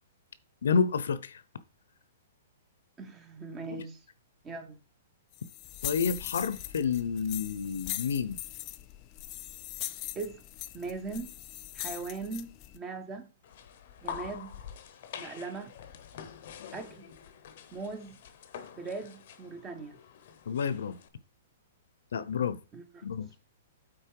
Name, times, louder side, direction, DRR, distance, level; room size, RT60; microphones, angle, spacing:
voice 1, 0.6-1.4 5.8-8.4 20.5-21.0 22.1-22.6 23.0-23.3, left 6 dB, 80° left, 0.8 m, -29 dB
voice 2, 3.0-4.0 4.4-4.8 10.1-10.4 10.7-11.3 11.7-13.3 14.0-14.6 15.2-15.7 16.7-17.0 17.7-18.1 18.8-19.9 22.7-23.1, right 4 dB, 10° right, 0.8 m, -39 dB
sound 1, 5.3-12.8, left 16 dB, 20° left, 0.3 m, -41 dB
sound 2, 13.4-21.1, left 8 dB, 40° left, 0.8 m, -46 dB
8.7 x 4.2 x 4.7 m
hypercardioid pair, 180°, 0 cm